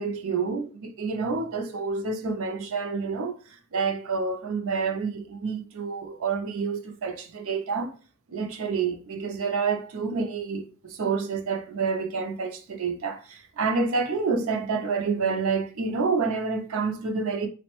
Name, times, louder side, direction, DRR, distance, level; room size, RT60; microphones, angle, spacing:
voice 1, 0.0-7.9 8.3-17.5, right 4 dB, 65° right, 0.5 m, -28 dB
3.2 x 2.1 x 3.0 m
head